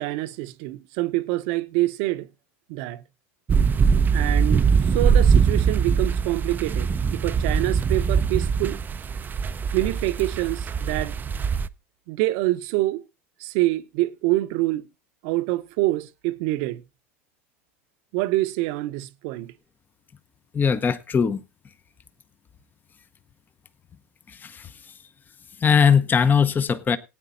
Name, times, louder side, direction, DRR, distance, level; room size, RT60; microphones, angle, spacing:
voice 1, 0.0-2.3 2.7-3.0 4.1-8.8 9.7-11.2 12.1-13.0 13.4-14.8 15.2-16.8 18.1-19.5, right 18 dB, 60° right, 0.8 m, -26 dB
sound 1, 3.5-11.7, right 6 dB, 25° right, 0.5 m, -22 dB
voice 2, 20.5-21.4 24.4-24.6 25.6-27.0, left 6 dB, 25° left, 0.8 m, -20 dB
19.0 x 9.1 x 2.6 m
hypercardioid pair, 85°, 8 cm